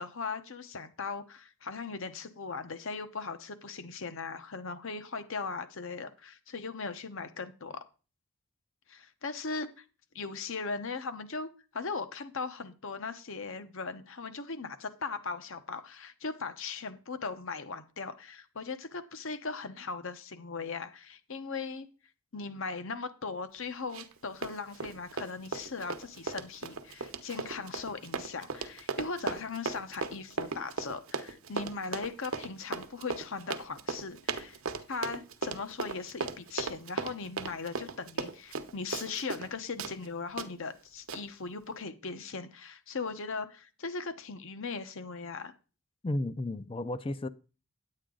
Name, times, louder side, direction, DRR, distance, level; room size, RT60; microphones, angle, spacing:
voice 1, 0.0-7.9 8.9-9.8 10.1-21.9 22.3-34.6 34.9-45.5, left 4 dB, 60° left, 0.9 m, -39 dB
Run, 23.9-24.2 24.4-39.5 39.8-39.9 40.4-40.5 41.1-41.2, right 4 dB, 65° right, 0.9 m, -36 dB
voice 2, 46.0-47.3, left 1 dB, 25° left, 0.4 m, -33 dB
9.6 x 8.7 x 3.8 m
head